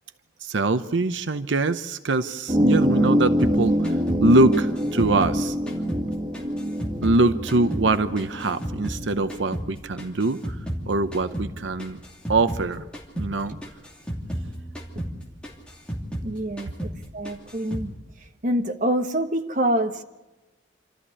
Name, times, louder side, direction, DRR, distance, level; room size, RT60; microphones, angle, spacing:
voice 1, 0.4-3.8 4.2-5.6 7.0-10.6 10.9-12.0 12.3-12.8 13.2-13.5, right 2 dB, 85° right, 0.8 m, -23 dB
sound 1, 2.5-9.5, equal, 25° right, 1.6 m, -25 dB
sound 2, 3.4-6.1 6.3-9.0 9.3-12.7 12.9-13.3 13.6-16.3 16.6-17.0 17.2-17.9, equal, 5° left, 2.8 m, -33 dB
voice 2, 16.2-17.9 18.4-20.0, right 1 dB, 45° right, 1.3 m, -26 dB
27.5 x 13.5 x 9.8 m
head